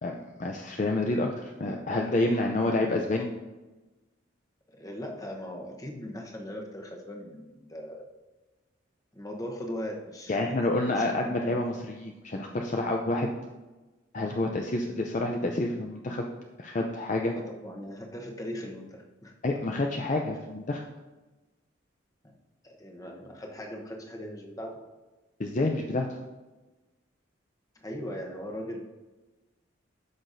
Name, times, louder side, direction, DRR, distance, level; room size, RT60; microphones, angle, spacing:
voice 1, 0.0-3.3 10.3-13.3 14.1-16.3 16.6-17.3 19.4-20.8 25.4-26.2, left 2 dB, 40° left, 1 dB, 0.5 m, -28 dB
voice 2, 4.7-8.0 9.1-10.7 11.0-11.5 17.3-19.3 22.6-24.8 27.8-28.9, equal, 20° left, 1 dB, 1.0 m, -39 dB
13.0 x 5.8 x 2.6 m, 1.1 s
head